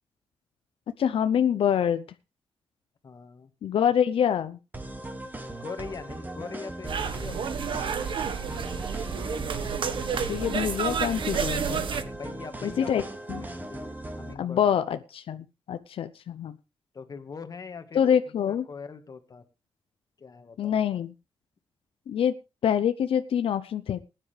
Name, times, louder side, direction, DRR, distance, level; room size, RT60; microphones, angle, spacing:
voice 1, 1.0-2.0 3.6-4.6 10.3-11.9 12.6-13.0 13.3-13.4 14.4-16.6 17.9-18.6 20.6-21.1 22.1-22.3 22.6-24.0, left 8 dB, 85° left, 10 dB, 0.7 m, -25 dB
voice 2, 3.0-3.5 5.4-7.8 12.2-13.1 13.4-14.6 16.9-18.0 18.5-19.4 20.2-20.8, left 5 dB, 40° left, 8 dB, 1.7 m, -42 dB
sound 1, 4.7-14.3, right 1 dB, 20° right, 2.0 m, -38 dB
sound 2, 6.9-12.0, right 6 dB, 65° right, 1.4 m, -30 dB
20.0 x 9.9 x 3.4 m, 0.29 s
wide cardioid pair, 135°, 9 cm